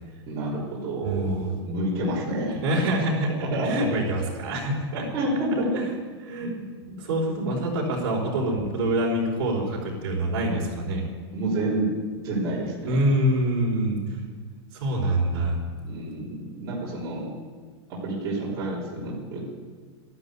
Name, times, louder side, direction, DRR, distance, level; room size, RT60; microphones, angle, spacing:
voice 1, 0.3-2.6 3.4-3.9 5.1-5.8 6.5-6.7 11.3-11.9 12.2-13.0 15.8-17.3 17.9-19.4, right 1 dB, 25° right, -8 dB, 3.8 m, -29 dB
voice 2, 1.0-1.6 2.6-5.1 5.7-5.9 6.2-6.5 6.9-11.0 12.8-14.2 14.7-15.6, right 1 dB, 50° right, -2 dB, 4.5 m, -25 dB
13.0 x 12.0 x 8.4 m, 1.5 s
supercardioid pair, 180°, 15 cm